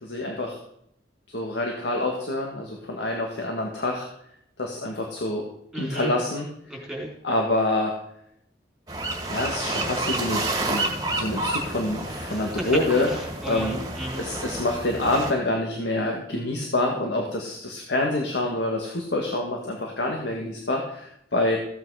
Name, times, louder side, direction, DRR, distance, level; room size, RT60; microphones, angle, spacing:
voice 1, 0.0-0.6 1.3-4.1 4.6-5.4 5.8-6.5 7.2-7.9 9.3-10.8 11.1-13.1 13.5-13.8 14.2-21.6, left 2 dB, 80° left, 0 dB, 1.8 m, -26 dB
voice 2, 5.7-6.1 6.7-7.1 12.3-12.8 13.1-14.3, right 1 dB, ahead, -3 dB, 3.9 m, -34 dB
sound 1, 8.9-15.3, right 2 dB, 20° right, 2.0 m, -30 dB
15.0 x 8.6 x 4.9 m, 0.74 s
head